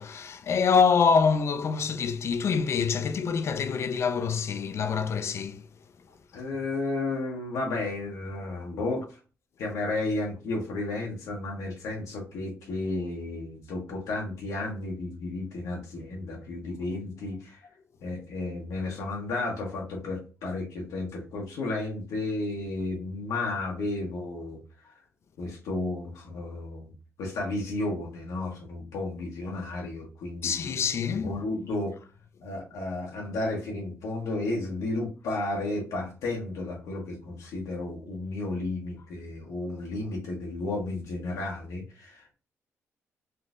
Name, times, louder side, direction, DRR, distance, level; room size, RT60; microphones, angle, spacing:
voice 1, 0.0-5.6 30.4-31.3, left 6 dB, 55° left, 0.4 m, -25 dB
voice 2, 6.3-9.2 9.6-17.7 18.0-24.6 25.4-26.9 27.2-30.5 31.1-31.9 32.4-42.3, left 2 dB, 90° left, 0.9 m, -33 dB
3.6 x 2.6 x 2.4 m
cardioid pair, 85°, 5 cm